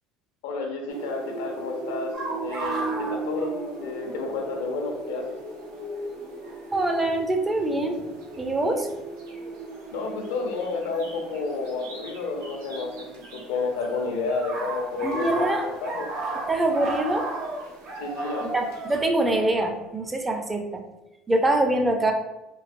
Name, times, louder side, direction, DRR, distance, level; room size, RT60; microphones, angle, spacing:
voice 1, 0.4-2.1 2.4-3.5 3.8-5.2 9.9-13.2 13.5-15.5 15.8-16.1 17.9-18.5, left 4 dB, 90° left, 2 dB, 0.6 m, -30 dB
sound 1, 0.9-19.0, right 2 dB, 90° right, 0.8 m, -39 dB
Jake the puppy, 2.1-4.2 4.5-4.6 5.6-5.8 6.9-7.1 7.8-8.3 10.9-11.0 12.4-13.3 13.5-20.1, right 2 dB, 60° right, 1.1 m, -34 dB
voice 2, 6.7-8.0 8.4-8.9 15.0-15.6 16.5-17.3 18.4-20.8 21.3-22.1, right 1 dB, 15° right, 4 dB, 0.5 m, -24 dB
3.1 x 2.7 x 2.5 m, 0.98 s
supercardioid pair, 105°, 0 cm